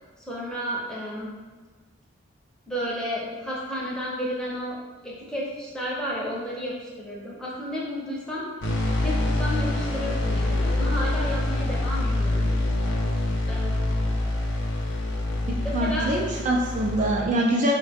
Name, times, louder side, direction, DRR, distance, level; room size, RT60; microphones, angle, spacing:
voice 1, 0.2-1.4 2.7-4.8 5.0-8.4 9.0-12.5 13.5-14.1 15.6-16.1, equal, 5° left, -6 dB, 0.6 m, -32 dB
sound 1, 8.6-17.1, left 1 dB, 70° left, 0.6 m, -26 dB
voice 2, 15.5-17.7, right 1 dB, 40° right, -2 dB, 0.3 m, -24 dB
4.5 x 2.1 x 3.4 m, 1.4 s
head